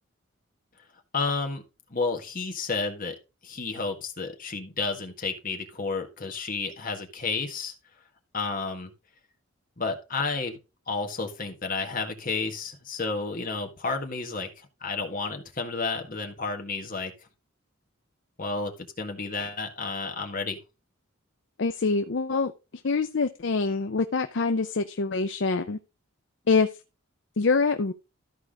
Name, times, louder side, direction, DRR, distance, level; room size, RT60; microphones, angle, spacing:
voice 1, 1.1-1.6 1.9-3.1 3.4-7.7 8.3-8.9 9.8-10.6 10.9-17.1 18.4-20.6, left 4 dB, 40° left, 1.7 m, -31 dB
voice 2, 21.6-22.5 22.8-25.8 26.5-26.7 27.4-27.9, left 4 dB, 55° left, 0.5 m, -25 dB
13.5 x 4.7 x 3.8 m
head